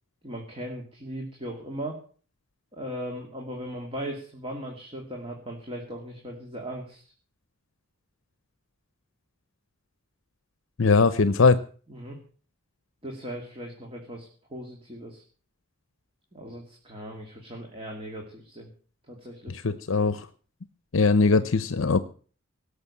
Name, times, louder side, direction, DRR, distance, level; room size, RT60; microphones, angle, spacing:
voice 1, 0.2-2.0 2.7-7.0 11.9-12.2 13.0-15.2 16.3-18.7 19.1-19.6, right 1 dB, 25° right, 1 dB, 2.6 m, -38 dB
voice 2, 10.8-11.6 19.5-20.3 20.9-22.0, left 4 dB, 70° left, 14 dB, 0.7 m, -21 dB
18.0 x 6.6 x 8.5 m, 0.42 s
head